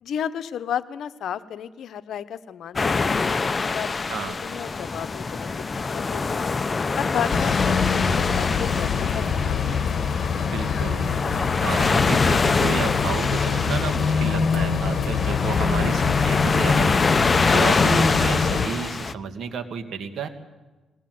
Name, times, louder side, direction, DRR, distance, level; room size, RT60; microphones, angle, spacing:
voice 1, 0.0-3.3 3.6-6.6 6.9-9.9, left 9 dB, 70° left, 13 dB, 0.9 m, -33 dB
sound 1, 2.8-19.1, left 4 dB, 30° left, 0.6 m, -25 dB
sound 2, 7.3-18.7, left 6 dB, 50° left, 1.8 m, -24 dB
voice 2, 10.5-11.1 11.6-20.3, right 6 dB, 65° right, 7 dB, 2.1 m, -31 dB
21.0 x 18.5 x 7.8 m, 1.2 s
cardioid pair, 90°, 0 cm